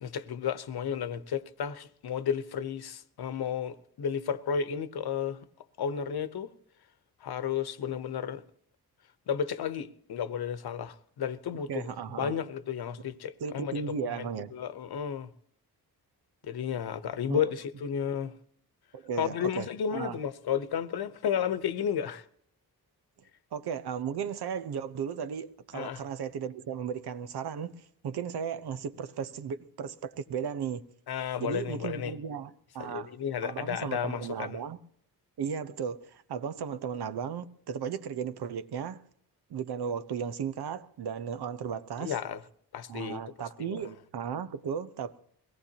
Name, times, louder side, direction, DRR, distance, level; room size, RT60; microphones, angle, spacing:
voice 1, 0.0-5.4 5.8-6.5 7.2-8.4 9.3-15.3 16.4-18.3 19.2-22.3 25.7-26.0 31.1-32.1 32.8-34.6 42.0-42.4 42.7-43.9, left 8 dB, 75° left, 1.0 m, -33 dB
voice 2, 11.7-12.3 13.4-14.5 17.3-17.5 18.9-20.2 23.5-30.8 31.4-33.1 33.4-34.8 35.4-39.0 39.5-42.1 42.9-45.2, right 7 dB, 80° right, 1.0 m, -35 dB
22.5 x 17.5 x 2.9 m
wide cardioid pair, 130°, 38 cm